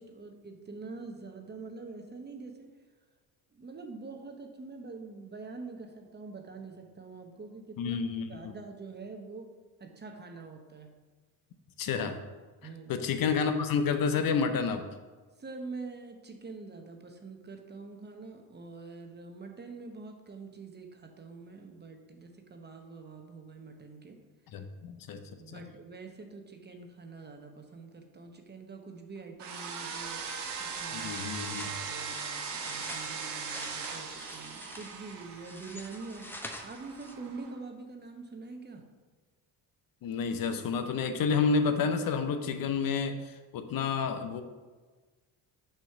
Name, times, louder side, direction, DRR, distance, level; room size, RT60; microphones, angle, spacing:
voice 1, 0.0-2.7 3.5-8.0 8.3-9.5 9.8-10.9 12.6-12.9 15.4-24.2 25.4-31.2 31.6-38.8, right 4 dB, 25° right, 4 dB, 0.9 m, -45 dB
voice 2, 7.8-8.5 11.8-12.2 12.9-14.8 24.5-25.2 25.5-25.6 30.9-31.7 40.0-44.4, left 5 dB, 50° left, 8 dB, 0.7 m, -30 dB
sound 1, 29.4-37.5, right 5 dB, 70° right, 1.2 m, -39 dB
sound 2, 29.9-37.4, left 1 dB, 5° left, 0.6 m, -47 dB
6.5 x 3.0 x 5.8 m, 1.4 s
cardioid pair, 95°, 44 cm